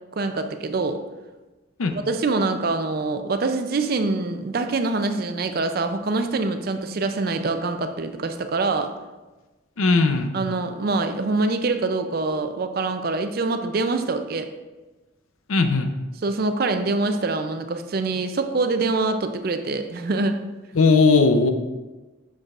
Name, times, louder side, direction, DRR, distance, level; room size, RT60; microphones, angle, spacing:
voice 1, 0.2-1.0 1.9-8.9 10.3-14.5 16.2-20.4, right 3 dB, 45° right, 8 dB, 0.4 m, -25 dB
voice 2, 9.8-10.3 15.5-15.9 20.7-21.5, left 3 dB, 85° left, 7 dB, 0.6 m, -18 dB
7.7 x 6.2 x 2.4 m, 1.2 s
head